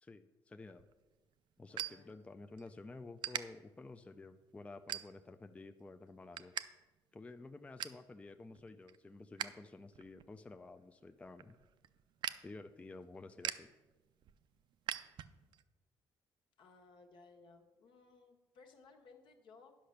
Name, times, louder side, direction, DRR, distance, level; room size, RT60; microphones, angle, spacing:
voice 1, 0.0-0.9 1.6-6.5 7.1-11.6 12.4-13.7, left 3 dB, 15° left, 8 dB, 0.4 m, -52 dB
sound 1, 0.6-2.7 3.2-3.4 4.0-4.2 4.9-5.4 5.8-6.7 6.9-7.0 7.4-8.0 8.5-9.6 9.9-15.6, right 11 dB, 65° right, 0.5 m, -44 dB
voice 2, 1.7-2.5 16.6-19.8, left 4 dB, 70° left, 3 dB, 1.5 m, -61 dB
10.0 x 5.7 x 6.5 m, 1.2 s
cardioid pair, 115°, 9 cm